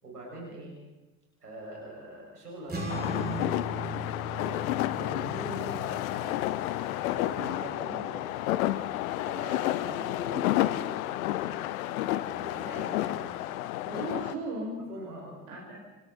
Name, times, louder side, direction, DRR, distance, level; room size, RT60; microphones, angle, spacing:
voice 1, 0.0-0.7 1.4-6.3 6.6-8.2 9.2-10.4 12.3-12.8 14.9-15.4, right 1 dB, 85° right, -3 dB, 6.9 m, -43 dB
sound 1, 2.7-9.3, left 1 dB, 20° right, 6.4 m, -39 dB
sound 2, 2.9-14.3, left 14 dB, 65° left, 1.0 m, -31 dB
voice 2, 9.9-10.6 12.6-13.3 13.9-14.8 15.5-15.8, right 2 dB, 65° right, -2 dB, 6.8 m, -39 dB
28.0 x 27.0 x 4.4 m, 1.1 s
figure-of-eight pair, 60°, 46 cm